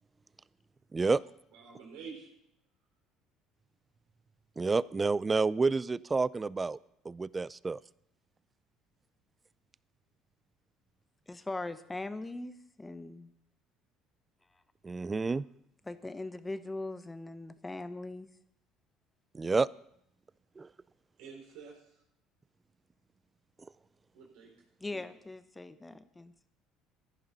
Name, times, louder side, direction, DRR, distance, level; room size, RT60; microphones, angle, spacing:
voice 1, 1.5-2.3 21.2-21.8 24.1-24.5 24.9-25.1, right 5 dB, 80° right, -1 dB, 4.3 m, -48 dB
voice 2, 4.6-6.8 7.1-7.8 14.8-15.4 19.3-19.7 20.6-20.7, right 4 dB, 25° right, 21 dB, 0.3 m, -29 dB
voice 3, 11.3-13.3 15.9-18.3 24.8-26.5, left 2 dB, 15° left, 12 dB, 0.9 m, -40 dB
15.0 x 10.5 x 4.1 m, 0.76 s
supercardioid pair, 85°, 0 cm